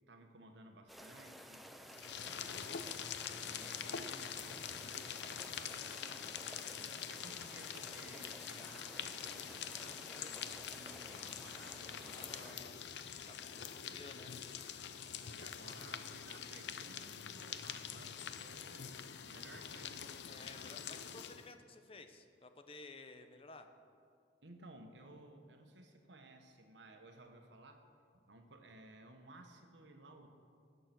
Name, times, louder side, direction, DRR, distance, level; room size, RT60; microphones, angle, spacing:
voice 1, 0.1-1.7 2.2-5.1 5.5-12.6 13.9-14.0 15.2-20.1 20.4-20.6 24.4-27.8 28.1-30.3, right 2 dB, 80° right, 5 dB, 1.4 m, -58 dB
sound 1, 0.9-12.5, equal, ahead, 0.6 m, -54 dB
sound 2, 1.9-21.5, left 8 dB, 75° left, 0.6 m, -45 dB
voice 2, 12.1-12.8 13.2-14.3 20.2-23.7, left 3 dB, 30° left, 8 dB, 0.8 m, -54 dB
18.5 x 6.9 x 6.1 m, 2.3 s
head